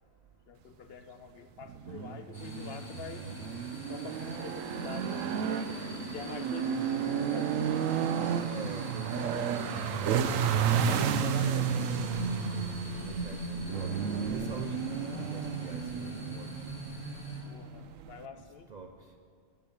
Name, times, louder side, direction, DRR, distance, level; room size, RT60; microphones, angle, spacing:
voice 1, 0.5-3.3 3.9-5.7 6.1-8.2 9.2-11.9 17.5-18.7, left 6 dB, 65° left, 9 dB, 0.7 m, -46 dB
sound 1, 1.6-18.3, right 8 dB, 85° right, 1.0 m, -32 dB
sound 2, 2.3-17.4, equal, 35° left, 3.8 m, -41 dB
voice 2, 8.4-10.4 13.0-16.8 18.7-19.2, right 4 dB, 50° right, 3 dB, 0.5 m, -44 dB
Bowed string instrument, 11.0-16.1, left 1 dB, 15° right, 2.6 m, -52 dB
9.1 x 8.6 x 8.0 m, 2.3 s
omnidirectional pair, 1.3 m